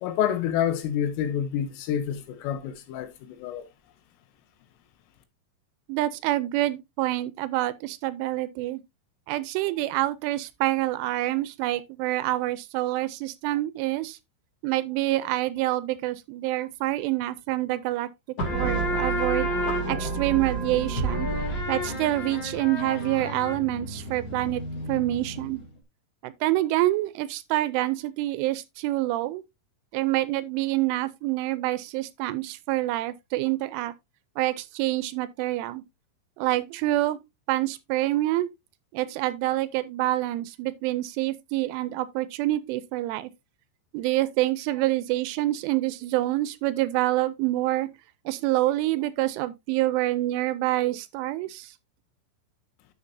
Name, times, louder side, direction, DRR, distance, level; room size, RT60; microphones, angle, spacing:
voice 1, 0.0-3.7, left 9 dB, 85° left, 3.9 m, -28 dB
voice 2, 5.9-8.8 9.3-14.2 14.6-18.1 18.5-19.5 19.9-21.3 21.7-24.6 24.9-25.6 26.2-29.4 29.9-33.9 34.4-35.8 36.4-37.2 37.5-38.5 38.9-43.3 43.9-47.9 48.3-51.7, right 16 dB, 85° right, 3.0 m, -27 dB
sound 1, 18.4-25.7, right 2 dB, 35° left, 1.9 m, -30 dB
10.5 x 7.6 x 2.7 m
omnidirectional pair, 5.7 m